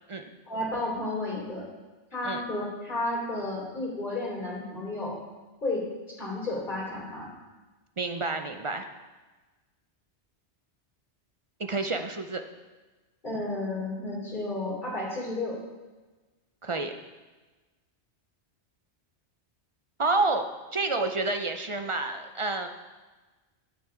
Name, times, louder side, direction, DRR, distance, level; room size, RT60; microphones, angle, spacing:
voice 1, 0.5-1.7 2.1-5.2 5.6-7.3 13.2-15.6, left 2 dB, 45° left, -4 dB, 3.4 m, -32 dB
voice 2, 8.0-8.9 11.6-12.4 16.6-16.9 20.0-22.7, right 3 dB, 40° right, 6 dB, 0.4 m, -29 dB
17.0 x 6.0 x 3.7 m, 1.2 s
omnidirectional pair, 1.2 m